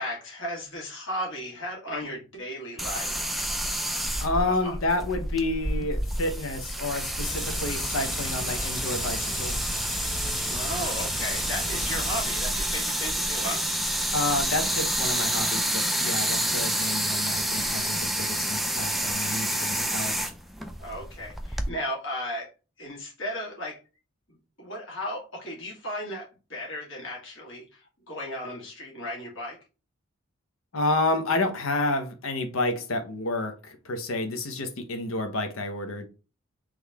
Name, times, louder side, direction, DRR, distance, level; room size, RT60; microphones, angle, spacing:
voice 1, 0.0-3.3 4.1-4.7 10.5-13.6 20.8-22.5 22.8-23.8 24.3-29.6, left 1 dB, 65° left, 1.7 m, -35 dB
sound 1, 2.8-21.7, right 1 dB, ahead, 0.3 m, -29 dB
voice 2, 4.2-9.7 14.1-20.1 30.7-36.1, left 2 dB, 85° left, 0.8 m, -29 dB
sound 2, 7.2-12.3, left 1 dB, 40° left, 1.7 m, -36 dB
3.8 x 3.1 x 3.4 m
head